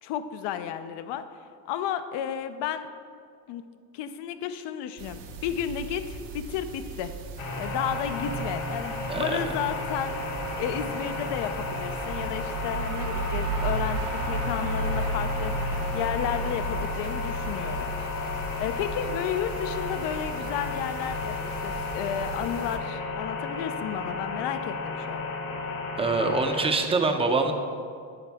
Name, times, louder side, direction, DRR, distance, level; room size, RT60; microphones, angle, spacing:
voice 1, 0.0-1.2 1.7-2.9 3.5-3.6 3.9-7.1 7.6-10.1 10.6-15.5 15.9-17.9 18.6-25.2, left 9 dB, 65° left, 10 dB, 0.6 m, -32 dB
sound 1, 5.0-22.8, right 4 dB, 65° right, 1.0 m, -41 dB
sound 2, 7.4-26.6, left 3 dB, 85° left, 2.0 m, -33 dB
voice 2, 9.1-9.5 26.0-27.5, right 3 dB, 10° right, 5 dB, 0.6 m, -25 dB
sound 3, 12.1-23.7, right 2 dB, 45° right, 0.9 m, -34 dB
8.7 x 7.2 x 3.5 m, 2.3 s
cardioid pair, 115°, 46 cm